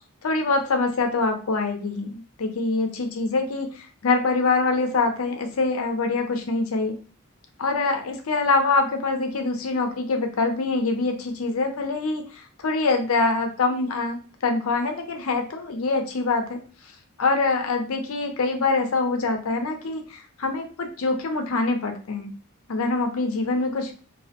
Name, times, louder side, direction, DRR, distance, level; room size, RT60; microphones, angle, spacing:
voice 1, 0.2-6.9 7.6-14.2 14.4-16.6 17.2-22.3 22.7-24.0, left 3 dB, 80° left, 5 dB, 0.5 m, -24 dB
2.3 x 2.0 x 2.8 m, 0.39 s
head